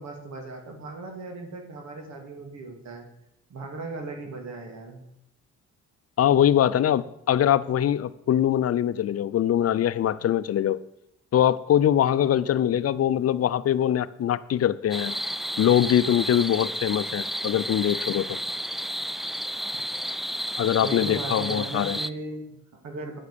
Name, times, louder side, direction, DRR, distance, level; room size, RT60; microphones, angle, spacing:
voice 1, 0.0-3.0 3.5-5.0 20.8-23.2, right 2 dB, 65° right, 3 dB, 2.7 m, -37 dB
voice 2, 6.2-10.8 11.3-15.2 15.6-18.4 20.6-22.0, left 10 dB, 50° left, 16 dB, 0.6 m, -23 dB
sound 1, 14.9-22.1, equal, ahead, 0.3 m, -32 dB
10.0 x 8.2 x 6.9 m, 0.80 s
cardioid pair, 90°, 30 cm